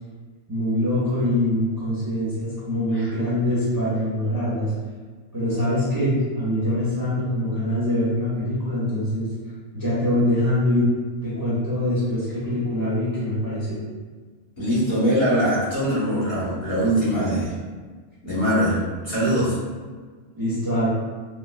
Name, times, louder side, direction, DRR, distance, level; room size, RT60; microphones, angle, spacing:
voice 1, 0.5-4.7 5.3-9.3 9.7-10.9 11.2-13.8 20.4-20.9, left 1 dB, 20° right, -10 dB, 0.9 m, -24 dB
voice 2, 14.6-17.5 18.2-19.6, equal, 25° left, -10 dB, 1.1 m, -22 dB
5.2 x 2.1 x 2.2 m, 1.4 s
omnidirectional pair, 1.4 m